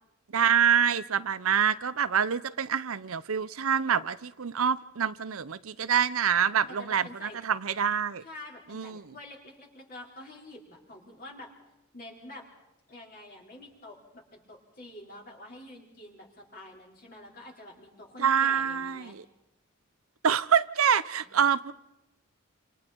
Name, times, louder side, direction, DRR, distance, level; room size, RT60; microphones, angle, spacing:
voice 1, 0.3-8.2 8.7-9.1 18.2-19.2 20.2-21.7, right 7 dB, 75° right, 0.7 m, -26 dB
voice 2, 6.8-7.4 8.2-11.5 11.9-12.4 12.9-19.2 21.1-21.3, left 1 dB, 40° left, 5.3 m, -47 dB
28.5 x 27.5 x 4.6 m
head